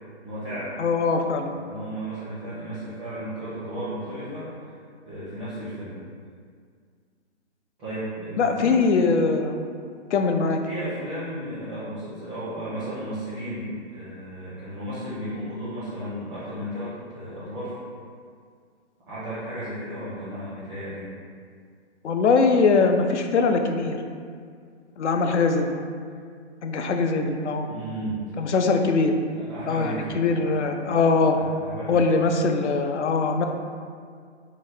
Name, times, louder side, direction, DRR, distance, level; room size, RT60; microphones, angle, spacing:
voice 1, 0.2-0.7 1.5-4.8 5.0-5.9 7.8-8.9 10.6-17.8 19.1-21.1 27.6-28.5 29.3-30.2 31.3-32.0, right 1 dB, ahead, -13 dB, 0.3 m, -34 dB
voice 2, 0.8-1.5 8.4-9.6 10.1-10.6 22.0-24.0 25.0-25.7 26.6-27.7 28.4-29.1 29.7-31.4 31.9-33.4, left 4 dB, 80° left, 5 dB, 0.6 m, -22 dB
4.8 x 2.2 x 3.8 m, 2.1 s
hypercardioid pair, 140°, 34 cm